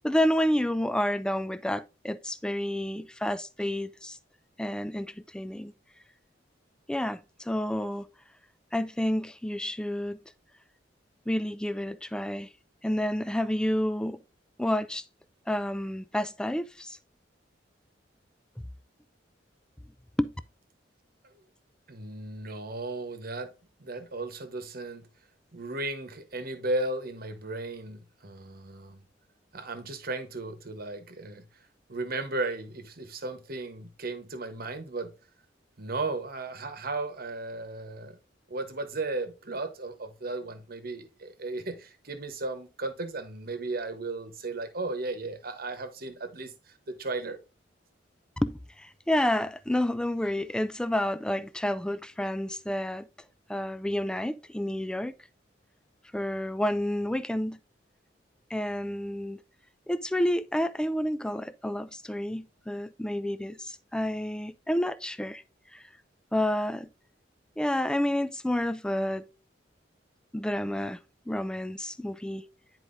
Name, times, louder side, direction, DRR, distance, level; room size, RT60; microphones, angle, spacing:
voice 1, 0.0-4.2 4.6-5.7 6.9-8.1 8.7-10.2 11.3-12.5 12.8-14.2 14.6-15.0 15.5-17.0 20.2-20.3 48.4-53.1 53.5-55.1 56.1-57.6 58.5-59.4 59.9-65.4 65.7-65.8 66.3-66.9 67.6-69.2 70.3-71.0 71.3-72.5, left 1 dB, 5° left, 0.3 m, -29 dB
voice 2, 21.9-23.5 23.8-25.1 25.5-29.0 29.5-31.4 31.9-35.1 35.8-38.2 38.5-47.4, right 2 dB, 55° right, 1.1 m, -35 dB
9.7 x 4.6 x 2.6 m
head